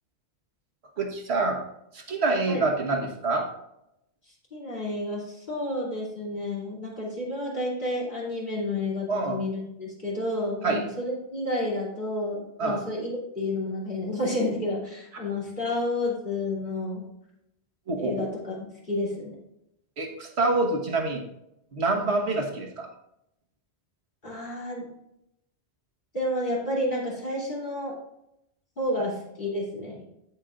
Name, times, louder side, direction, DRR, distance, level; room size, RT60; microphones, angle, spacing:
voice 1, 1.0-1.6 1.9-3.5 9.1-9.4 10.6-10.8 12.6-12.8 17.9-18.3 20.0-21.2 21.7-22.9, right 3 dB, 75° right, 2 dB, 1.6 m, -26 dB
voice 2, 4.5-17.0 18.0-19.3 24.2-24.9 26.1-28.0 28.8-30.0, left 1 dB, 45° left, -5 dB, 3.1 m, -30 dB
16.0 x 5.5 x 2.5 m, 0.82 s
omnidirectional pair, 1.1 m